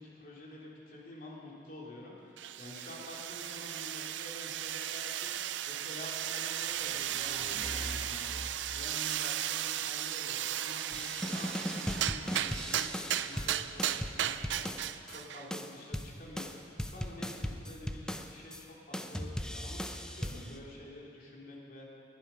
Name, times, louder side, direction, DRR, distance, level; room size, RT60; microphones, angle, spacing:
voice 1, 0.0-14.6 15.1-16.5 16.8-21.9, left 1 dB, 50° left, -3 dB, 2.9 m, -48 dB
sound 1, 2.4-15.5, right 11 dB, 75° right, 0.4 m, -36 dB
sound 2, 6.7-9.0, right 1 dB, 30° right, 1.2 m, -44 dB
sound 3, 10.9-15.2 15.5-18.6 18.9-20.6, equal, 5° left, 0.6 m, -38 dB
21.0 x 11.0 x 5.6 m, 2.8 s
head